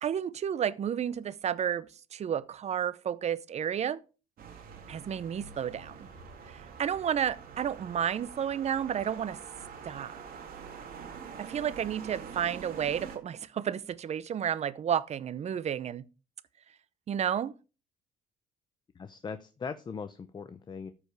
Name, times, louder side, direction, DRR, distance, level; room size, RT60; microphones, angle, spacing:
voice 1, 0.0-4.0 4.9-6.1 6.5-9.4 9.8-10.1 11.4-16.0 17.1-17.5, right 9 dB, 40° right, 0.7 m, -31 dB
sound 1, 4.4-13.2, right 6 dB, 60° right, 2.2 m, -46 dB
voice 2, 19.0-20.9, left 5 dB, 25° left, 0.6 m, -40 dB
13.5 x 5.0 x 4.7 m
cardioid pair, 110°, 17 cm